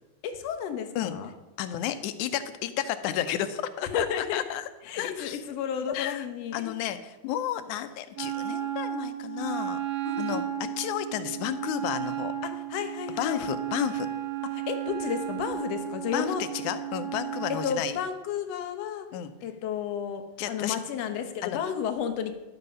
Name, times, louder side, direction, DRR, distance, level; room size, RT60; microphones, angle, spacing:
voice 1, 0.2-1.3 3.9-4.4 4.8-6.7 10.1-10.7 12.4-13.5 14.5-16.4 17.5-19.1 19.4-22.3, left 7 dB, 65° left, 7 dB, 2.0 m, -32 dB
voice 2, 1.6-4.6 5.0-5.4 5.9-6.2 6.5-7.0 7.2-9.8 10.2-10.4 10.8-12.3 13.2-14.1 16.1-16.4 16.6-17.9 19.1-19.3 20.4-20.8 21.4-21.6, left 11 dB, 85° left, 11 dB, 2.1 m, -31 dB
Wind instrument woodwind instrument, 8.2-17.8, right 10 dB, 60° right, 2.1 m, -34 dB
12.0 x 8.0 x 5.5 m, 1.1 s
omnidirectional pair, 3.4 m